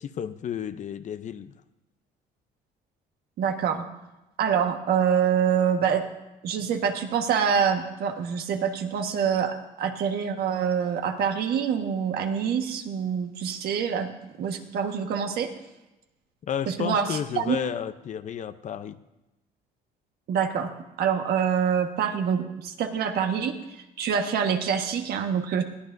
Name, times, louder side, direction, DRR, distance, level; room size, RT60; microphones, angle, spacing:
voice 1, 0.0-1.5 16.5-19.0, left 9 dB, 45° left, 12 dB, 0.7 m, -32 dB
voice 2, 3.4-3.8 4.4-6.0 6.4-14.1 14.4-15.5 16.7-17.6 20.3-20.7 21.0-23.6 24.0-25.6, right 7 dB, 70° right, 5 dB, 1.5 m, -25 dB
21.5 x 15.0 x 2.7 m, 0.99 s
cardioid pair, 110°, 17 cm